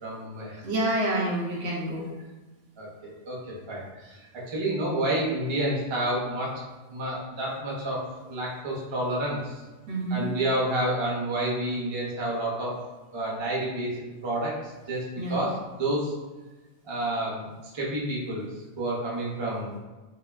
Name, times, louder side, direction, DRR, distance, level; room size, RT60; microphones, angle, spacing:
voice 1, 0.0-0.6 2.8-6.5 6.9-9.5 10.1-12.8 13.1-14.6 14.9-15.5 15.8-16.1 16.8-17.5 17.7-18.5 18.8-19.8, right 1 dB, 40° right, -4 dB, 0.4 m, -29 dB
voice 2, 0.6-2.1 9.9-10.3 15.2-15.5, right 1 dB, 65° right, -2 dB, 0.8 m, -28 dB
3.1 x 2.1 x 2.3 m, 1.2 s
omnidirectional pair, 1.3 m